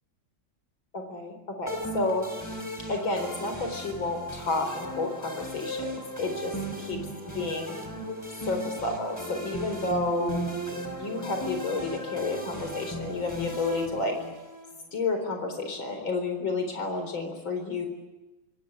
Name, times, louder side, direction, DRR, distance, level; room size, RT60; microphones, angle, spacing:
voice 1, 0.9-2.5 2.9-7.0 7.3-7.8 8.4-10.4 10.9-14.2 14.9-17.9, left 3 dB, 85° left, 5 dB, 4.9 m, -31 dB
sound 1, 1.7-14.7, right 1 dB, 10° left, 5.4 m, -36 dB
26.5 x 19.5 x 9.7 m, 1.1 s
omnidirectional pair, 2.1 m